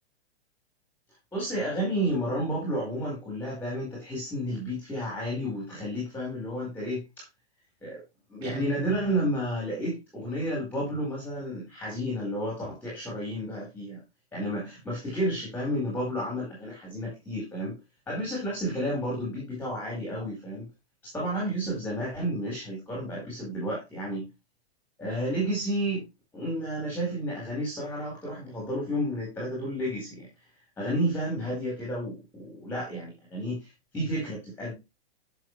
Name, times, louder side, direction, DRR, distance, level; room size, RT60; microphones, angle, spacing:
voice 1, 1.3-7.2 7.8-8.0 8.3-14.0 14.3-17.8 18.1-20.7 21.0-24.3 25.0-26.0 26.3-30.3 30.8-34.7, equal, 5° left, -3 dB, 4.5 m, -31 dB
Guitar, 8.4-9.7, right 12 dB, 80° right, 1.4 m, -40 dB
11.5 x 7.0 x 3.3 m, 0.23 s
hypercardioid pair, 165°, 32 cm